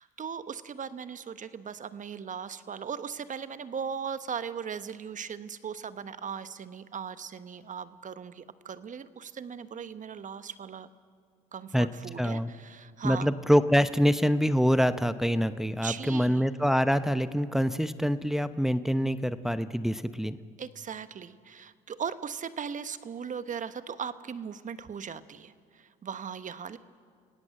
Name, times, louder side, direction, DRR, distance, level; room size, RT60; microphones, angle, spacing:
voice 1, 0.0-10.9 11.5-13.3 15.7-16.5 20.6-26.8, right 7 dB, 40° right, 13 dB, 1.2 m, -38 dB
voice 2, 12.2-12.5 13.0-20.4, equal, ahead, 12 dB, 0.9 m, -25 dB
29.5 x 17.5 x 7.8 m, 2.1 s
hypercardioid pair, 65°, 20 cm